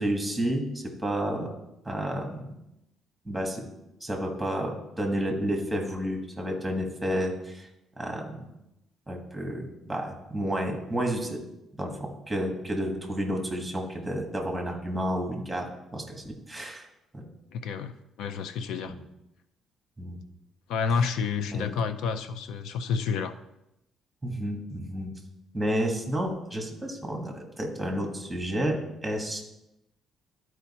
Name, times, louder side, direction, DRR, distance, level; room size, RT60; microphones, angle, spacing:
voice 1, 0.0-1.5 1.8-2.5 3.2-3.6 4.0-7.7 8.0-8.5 9.1-11.4 11.8-15.7 15.9-16.9 17.1-17.2 18.9-19.0 20.0-20.2 21.5-21.7 24.2-25.1 25.5-29.4, equal, 5° right, 2 dB, 1.5 m, -31 dB
voice 2, 17.5-18.9 20.7-23.3, left 6 dB, 80° left, 10 dB, 0.5 m, -29 dB
12.0 x 4.7 x 4.2 m, 0.89 s
cardioid pair, 150°, 0 cm